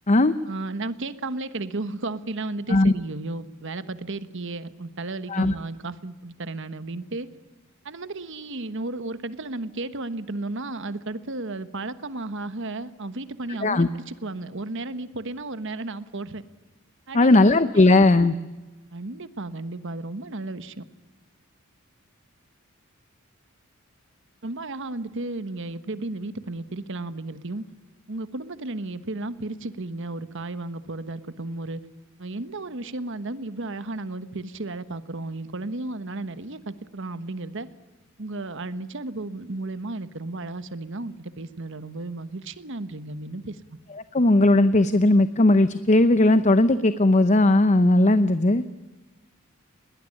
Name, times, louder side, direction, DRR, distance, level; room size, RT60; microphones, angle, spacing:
voice 1, 0.5-7.3 7.8-16.4 17.1-17.8 18.9-20.8 24.4-27.7 28.1-31.8 32.2-37.7 38.2-43.6, right 2 dB, 60° right, 12 dB, 1.3 m, -34 dB
voice 2, 17.1-18.3 44.1-48.6, left 2 dB, 35° left, 12 dB, 0.7 m, -17 dB
21.5 x 19.0 x 10.0 m, 1.2 s
head